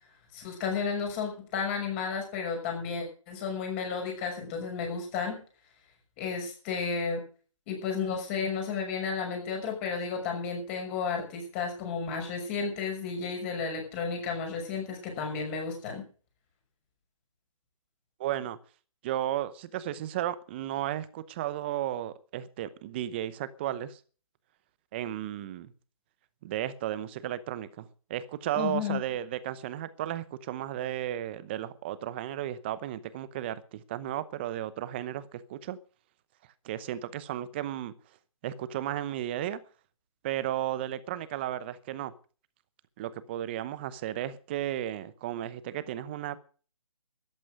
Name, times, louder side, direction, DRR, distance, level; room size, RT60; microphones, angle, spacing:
voice 1, 0.3-5.4 6.2-7.2 7.7-16.0 28.6-29.0, left 5 dB, 20° left, 3 dB, 6.0 m, -32 dB
voice 2, 18.2-18.6 19.0-24.0 24.9-25.7 26.4-35.8 36.6-37.9 38.4-39.6 40.2-42.1 43.0-46.4, right 12 dB, 20° right, 16 dB, 0.8 m, -34 dB
14.0 x 12.0 x 6.4 m, 0.40 s
figure-of-eight pair, 160°, 18 cm